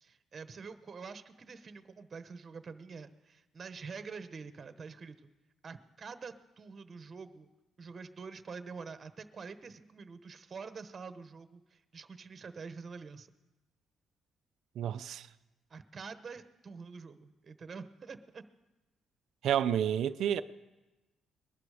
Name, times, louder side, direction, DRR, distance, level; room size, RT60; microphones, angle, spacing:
voice 1, 0.0-5.3 5.6-7.5 7.8-13.3 15.7-18.4, right 5 dB, 40° right, 1.0 m, -46 dB
voice 2, 14.8-15.3 19.4-20.4, right 9 dB, 75° right, 0.5 m, -30 dB
21.0 x 12.0 x 4.9 m
cardioid pair, 90°, 0 cm